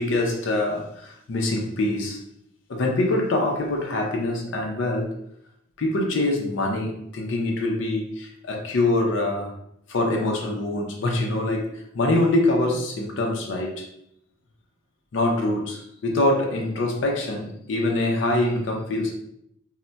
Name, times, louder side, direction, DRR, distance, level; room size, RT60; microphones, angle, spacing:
voice 1, 0.0-2.2 2.7-5.1 5.8-9.5 9.9-13.9 15.1-19.2, left 2 dB, 65° left, 0 dB, 0.5 m, -24 dB
2.2 x 2.1 x 3.8 m, 0.76 s
head